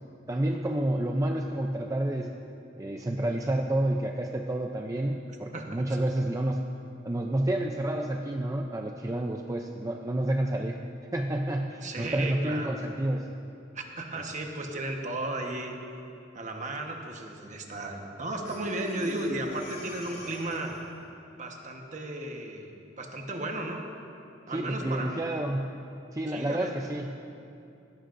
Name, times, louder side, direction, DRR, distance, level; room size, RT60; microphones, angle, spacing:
voice 1, 0.3-2.3 2.8-6.6 7.0-10.8 11.1-13.3 24.5-25.7 26.1-27.1, right 1 dB, 20° right, 2 dB, 0.5 m, -29 dB
voice 2, 11.8-12.8 13.7-15.7 16.3-20.8 21.3-22.7 23.0-23.8 24.5-25.3 26.3-26.8, right 2 dB, 40° right, 2 dB, 1.2 m, -34 dB
Breathing, 18.5-21.0, left 1 dB, 60° left, 2.9 m, -43 dB
17.5 x 15.5 x 2.6 m, 2.6 s
head